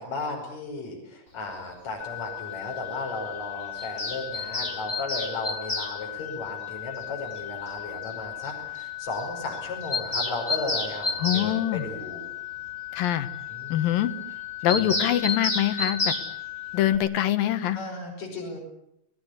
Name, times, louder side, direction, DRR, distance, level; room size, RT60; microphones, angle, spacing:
voice 1, 0.0-12.2 13.5-13.8 14.7-14.9 17.7-18.6, left 2 dB, 50° left, 1 dB, 6.8 m, -35 dB
sound 1, 2.0-17.0, left 14 dB, 70° left, 7.2 m, -38 dB
Bird vocalization bird call bird song, 3.8-5.9 7.4-7.5 7.7-8.1 8.4-8.5 8.8-8.9 9.1-9.3 9.5-11.5 14.7-16.3, left 3 dB, 15° left, 2.9 m, -29 dB
voice 2, 11.2-11.8 12.9-13.3 13.7-14.1 14.6-16.1 16.7-17.8, left 12 dB, 90° left, 10 dB, 3.2 m, -24 dB
29.5 x 20.0 x 8.2 m, 0.76 s
omnidirectional pair, 3.9 m